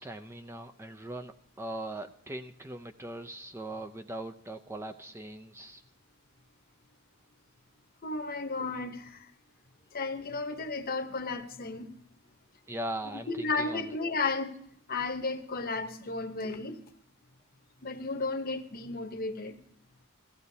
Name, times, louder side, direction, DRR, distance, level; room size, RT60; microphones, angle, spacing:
voice 1, 0.0-5.8 12.7-13.9, right 1 dB, 10° right, 6 dB, 0.4 m, -40 dB
voice 2, 8.0-9.3 9.9-11.9 13.3-14.5 14.9-16.8 17.8-19.6, left 3 dB, 45° left, 7 dB, 0.9 m, -33 dB
17.0 x 14.5 x 2.7 m, 0.64 s
head